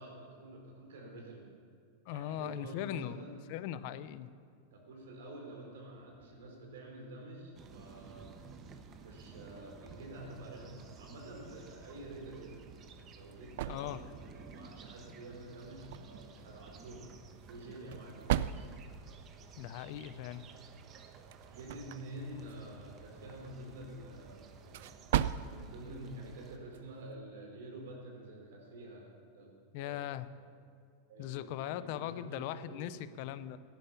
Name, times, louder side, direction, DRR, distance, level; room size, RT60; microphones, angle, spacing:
voice 1, 0.0-1.5 2.1-3.4 4.7-8.4 9.0-12.6 13.1-14.0 14.3-17.1 17.5-18.7 21.5-24.9 25.4-29.0 29.3-29.5 29.8-30.1 31.1-33.1, right 1 dB, 85° right, 0 dB, 4.5 m, -48 dB
voice 2, 2.1-4.3 13.7-14.0 19.6-20.4 22.3-22.4 29.7-30.3 31.2-33.6, left 12 dB, 55° left, 14 dB, 0.6 m, -40 dB
sound 1, 7.5-26.6, right 5 dB, 30° right, 1.1 m, -54 dB
sound 2, 12.7-27.2, right 11 dB, 65° right, 0.4 m, -41 dB
16.5 x 10.5 x 5.9 m, 2.3 s
supercardioid pair, 145°, 0 cm